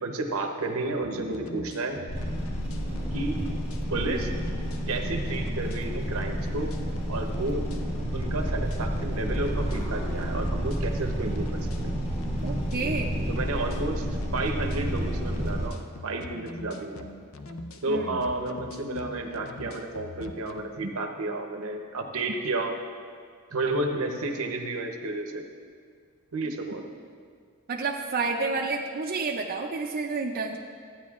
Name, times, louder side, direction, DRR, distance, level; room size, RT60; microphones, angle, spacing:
voice 1, 0.0-2.0 3.1-3.4 3.9-4.3 4.9-6.7 7.1-7.7 8.1-11.9 13.3-14.1 14.3-17.0 17.8-22.7 23.5-25.4 26.3-26.8, right 2 dB, 80° right, 3 dB, 0.9 m, -31 dB
sound 1, 1.0-20.6, left 3 dB, 70° left, 0.6 m, -44 dB
sound 2, 2.1-15.7, equal, 30° left, 1.4 m, -30 dB
voice 2, 12.4-13.2 17.9-18.2 27.7-30.6, right 4 dB, 45° right, 0 dB, 0.5 m, -30 dB
14.0 x 9.4 x 2.4 m, 2.1 s
head